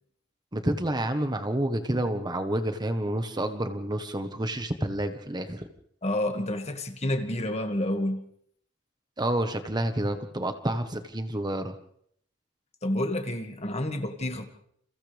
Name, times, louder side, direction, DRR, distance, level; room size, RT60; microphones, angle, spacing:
voice 1, 0.5-5.6 9.2-11.7, right 1 dB, 20° right, 7 dB, 1.3 m, -29 dB
voice 2, 6.0-8.2 12.8-14.4, left 1 dB, 35° left, 5 dB, 2.1 m, -29 dB
29.5 x 29.0 x 3.5 m, 0.68 s
head